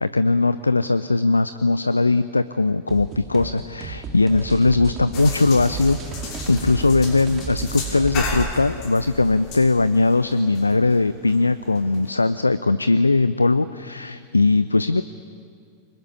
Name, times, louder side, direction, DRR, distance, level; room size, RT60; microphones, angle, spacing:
voice 1, 0.0-6.0 6.5-15.0, left 3 dB, 80° left, 14 dB, 0.6 m, -19 dB
sound 1, 2.9-8.5, right 5 dB, 30° right, 2.9 m, -33 dB
sound 2, 5.1-12.1, left 3 dB, 40° left, 6.1 m, -35 dB
25.0 x 22.0 x 9.8 m, 2.2 s
figure-of-eight pair, 90°, 0 cm